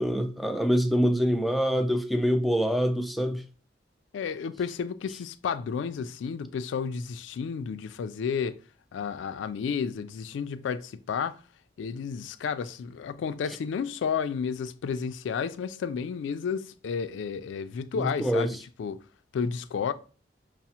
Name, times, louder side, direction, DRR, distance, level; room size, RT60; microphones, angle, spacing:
voice 1, 0.0-3.4 17.9-18.5, equal, ahead, 0.3 m, -25 dB
voice 2, 4.1-8.6 8.9-11.4 11.8-19.0 19.3-19.9, left 6 dB, 85° left, 0.3 m, -32 dB
5.8 x 2.0 x 2.8 m
head